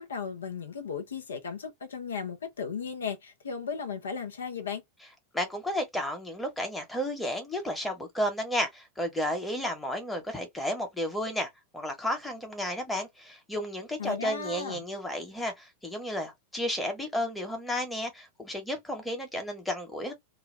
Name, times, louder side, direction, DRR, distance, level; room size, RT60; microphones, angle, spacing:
voice 1, 0.0-4.8 14.0-14.8, left 6 dB, 65° left, 0.6 m, -36 dB
voice 2, 5.3-20.1, equal, 5° left, 1.1 m, -32 dB
2.4 x 2.2 x 3.3 m
figure-of-eight pair, 90°, 0 cm